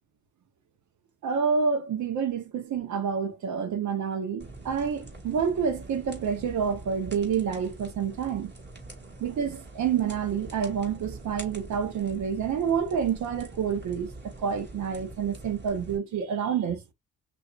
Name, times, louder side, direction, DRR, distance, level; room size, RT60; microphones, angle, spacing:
voice 1, 1.2-8.5 9.2-16.8, right 7 dB, 70° right, 1.1 m, -28 dB
sound 1, 4.4-16.0, right 2 dB, 35° right, 2.4 m, -44 dB
5.7 x 2.7 x 2.5 m
cardioid pair, 90°, 30 cm